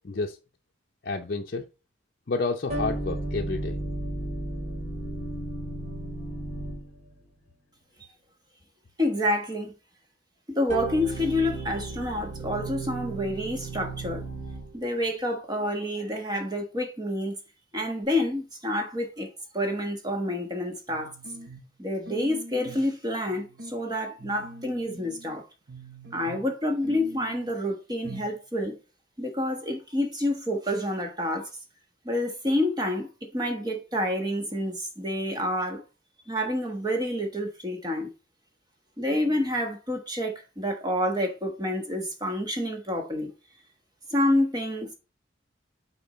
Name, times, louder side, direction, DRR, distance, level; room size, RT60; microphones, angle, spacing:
voice 1, 0.0-0.4 1.0-1.7 2.3-3.8, left 3 dB, 50° left, 0.6 m, -30 dB
sound 1, 2.7-7.1 10.7-14.9, right 2 dB, 40° right, 2.4 m, -34 dB
voice 2, 9.0-9.7 10.5-14.3 14.7-17.4 17.7-19.3 19.5-21.1 21.8-25.5 26.1-28.8 29.2-31.5 32.0-33.1 33.3-35.8 36.3-38.1 39.0-43.3 44.1-44.9, left 1 dB, 20° right, 1.2 m, -28 dB
sound 2, 20.9-21.7 22.0-22.9 23.3-23.8 24.2-25.3 25.7-26.5 26.8-27.6 28.0-28.4 28.6-28.7, right 1 dB, 70° right, 1.4 m, -44 dB
7.0 x 4.4 x 4.2 m
head